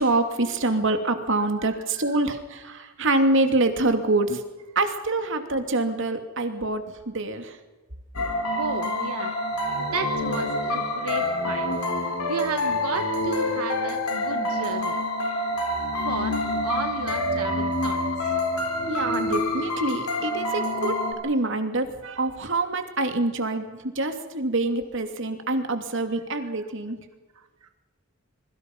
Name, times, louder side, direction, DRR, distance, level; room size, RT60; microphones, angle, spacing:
voice 1, 0.0-4.4 4.7-7.6 18.9-21.0 21.2-27.0, right 2 dB, 60° right, 6 dB, 2.8 m, -25 dB
voice 2, 1.7-2.2 8.6-9.3 9.8-11.7 12.3-15.0 16.0-18.3 26.4-26.5 27.3-27.7, right 4 dB, 90° right, 7 dB, 1.2 m, -34 dB
sound 1, 8.2-21.1, left 1 dB, 90° left, 4.2 m, -27 dB
26.5 x 23.5 x 5.5 m, 1.2 s
head